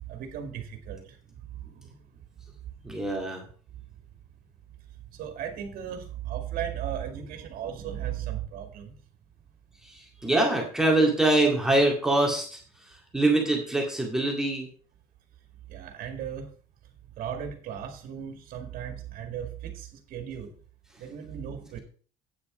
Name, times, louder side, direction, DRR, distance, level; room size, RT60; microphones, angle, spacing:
voice 1, 0.1-1.0 1.7-1.8 5.2-8.9 15.7-16.5 17.2-20.5 21.0-21.8, right 9 dB, 65° right, 6 dB, 2.0 m, -36 dB
voice 2, 2.8-3.4 9.9-12.6 13.1-14.7, right 2 dB, 5° right, -1 dB, 2.1 m, -24 dB
9.0 x 7.2 x 5.0 m, 0.42 s
cardioid pair, 155°, 16 cm